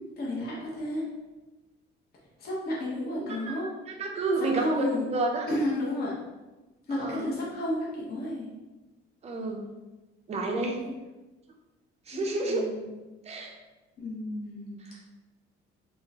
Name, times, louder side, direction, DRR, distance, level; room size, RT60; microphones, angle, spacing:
voice 1, 0.2-1.1 2.4-3.7 4.4-5.1 5.5-6.1 6.9-8.5 10.8-10.9 12.1-12.9 14.0-14.8, left 1 dB, 45° left, -5 dB, 0.9 m, -32 dB
voice 2, 3.1-3.6 3.9-5.5 6.9-7.2 9.2-9.6 10.3-10.8 12.1-12.7 13.3-13.5, right 3 dB, 30° right, 1 dB, 0.5 m, -30 dB
3.6 x 3.1 x 2.8 m, 1.1 s
cardioid pair, 175°, 21 cm